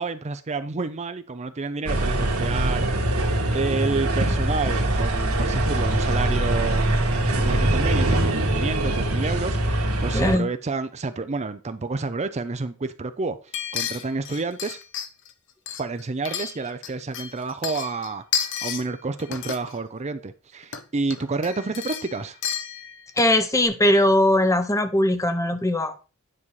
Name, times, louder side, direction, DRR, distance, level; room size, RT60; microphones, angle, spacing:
voice 1, 0.0-3.2 3.5-6.9 7.3-13.4 13.7-14.8 15.8-22.4, right 3 dB, 30° right, 0.5 m, -29 dB
sound 1, 1.9-10.4, right 1 dB, 70° right, 2.0 m, -23 dB
voice 2, 10.1-10.5 23.2-26.0, left 1 dB, 15° left, 0.8 m, -20 dB
sound 2, 13.5-15.3 15.7-16.9 17.1-18.9 19.2-19.8 20.6-20.8 21.1-23.4 23.6-23.7, left 8 dB, 60° left, 0.9 m, -31 dB
9.9 x 5.5 x 4.7 m
head